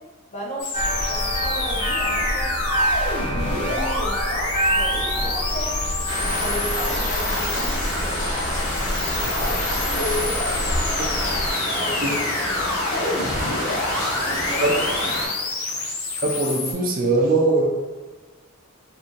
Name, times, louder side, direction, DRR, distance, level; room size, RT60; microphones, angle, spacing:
voice 1, 0.3-0.7 1.1-2.5 3.3-5.7 6.3-8.2 9.3-12.1 12.5-14.7, equal, 30° left, -5 dB, 0.8 m, -33 dB
sound 1, 0.6-16.7, left 3 dB, 75° left, 0.7 m, -29 dB
sound 2, 0.7-11.5, equal, 20° right, 1.1 m, -27 dB
sound 3, 6.1-15.3, left 1 dB, 55° left, 1.3 m, -27 dB
voice 2, 16.2-17.7, right 2 dB, 40° right, 0 dB, 0.4 m, -21 dB
2.6 x 2.6 x 3.7 m, 1.3 s
head